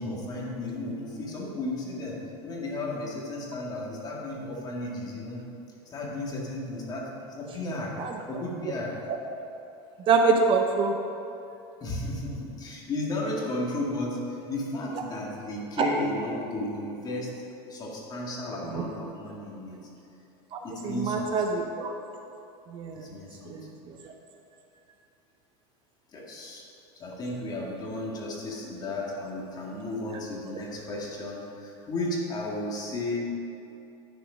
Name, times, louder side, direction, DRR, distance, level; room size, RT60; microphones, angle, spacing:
voice 1, 0.0-5.4 5.9-7.1 7.4-7.9 8.3-9.0 11.8-17.3 17.7-19.8 20.6-21.3 22.9-23.6 26.1-26.6 27.0-33.2, left 1 dB, 30° left, -3 dB, 2.1 m, -34 dB
voice 2, 10.1-10.9 15.8-15.9 18.7-18.8 20.5-21.9 22.7-23.1 23.5-24.0, right 4 dB, 35° right, 3 dB, 0.8 m, -25 dB
10.0 x 6.8 x 5.1 m, 2.8 s
supercardioid pair, 135°, 14 cm